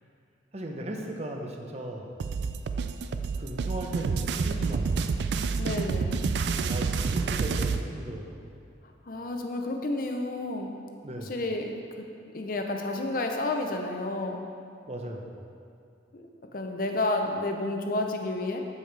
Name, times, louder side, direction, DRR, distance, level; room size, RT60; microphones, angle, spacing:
voice 1, 0.5-2.2 3.4-5.3 6.7-8.5 11.0-11.3 14.9-15.3, right 1 dB, 35° right, 1 dB, 0.8 m, -37 dB
sound 1, 2.2-7.8, right 4 dB, 70° right, 0.3 m, -28 dB
voice 2, 5.6-6.2 9.0-10.8 11.2-11.7 12.3-14.4 16.1-18.6, left 2 dB, 50° left, 3 dB, 0.7 m, -31 dB
13.5 x 5.0 x 3.4 m, 2.4 s
head